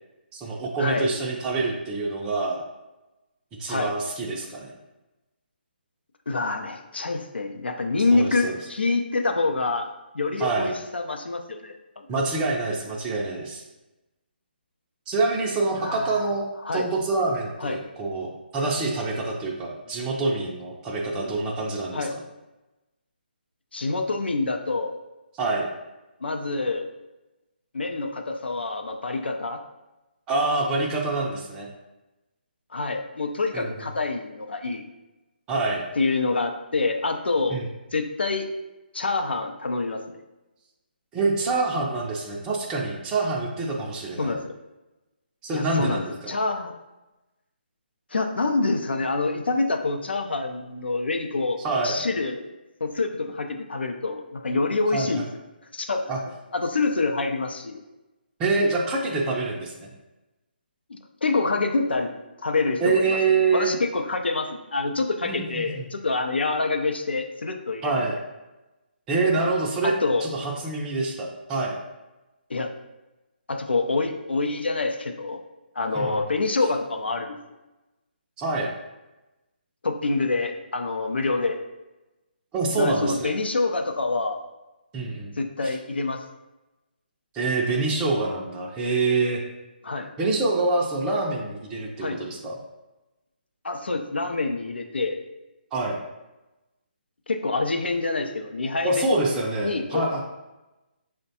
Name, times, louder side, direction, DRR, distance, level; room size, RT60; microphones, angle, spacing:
voice 1, 0.3-2.6 3.6-4.7 8.1-8.5 10.4-10.7 12.1-13.6 15.1-16.5 16.7-18.3 18.5-22.1 25.4-25.6 30.3-31.7 33.5-33.7 35.5-35.8 37.5-37.6 41.1-44.3 45.4-46.3 51.6-51.9 54.9-55.1 56.1-56.2 58.4-59.9 62.8-63.7 65.3-65.8 67.8-68.1 69.1-69.9 70.2-71.7 75.9-76.1 78.4-78.7 82.5-83.3 84.9-85.3 87.3-89.4 90.2-92.5 95.7-96.0 98.8-100.2, right 3 dB, 15° right, -3 dB, 0.4 m, -26 dB
voice 2, 6.3-9.9 10.1-12.1 15.7-16.3 16.6-16.9 17.6-17.8 21.9-22.2 23.7-25.0 26.2-26.9 27.7-29.6 32.7-34.8 36.0-37.6 37.9-38.5 38.9-40.0 44.2-44.5 45.5-46.7 48.1-52.4 52.8-55.2 55.7-56.1 56.5-57.8 60.9-62.1 62.4-63.2 63.5-68.1 69.8-70.3 72.5-72.7 73.5-75.4 75.8-77.4 79.8-81.6 82.8-84.4 85.4-86.2 89.8-90.1 92.0-92.2 93.6-95.2 97.3-99.1 99.6-100.1, left 3 dB, 80° left, 5 dB, 0.5 m, -26 dB
6.0 x 2.1 x 2.7 m, 1.0 s
figure-of-eight pair, 150°, 6 cm